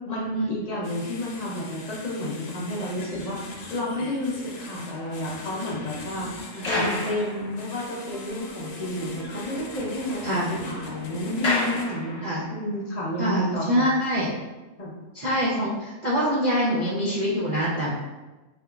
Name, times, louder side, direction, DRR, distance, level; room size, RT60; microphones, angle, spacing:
voice 1, 0.0-12.2 12.5-13.9 14.8-14.9, left 1 dB, 55° left, -5 dB, 0.4 m, -31 dB
sound 1, 0.8-11.8, left 3 dB, 90° left, 1.1 m, -41 dB
sound 2, 4.5-8.2 8.5-8.6 9.0-9.1 9.3-12.6 13.3-13.5, left 2 dB, 35° left, 0.8 m, -34 dB
voice 2, 6.5-7.1 10.2-10.5 12.2-12.5 13.2-14.3 15.1-17.9, equal, 55° right, -8 dB, 0.4 m, -25 dB
Wind instrument woodwind instrument, 7.8-12.9, right 1 dB, 80° right, 1.4 m, -42 dB
3.4 x 2.8 x 2.3 m, 1.1 s
omnidirectional pair, 1.4 m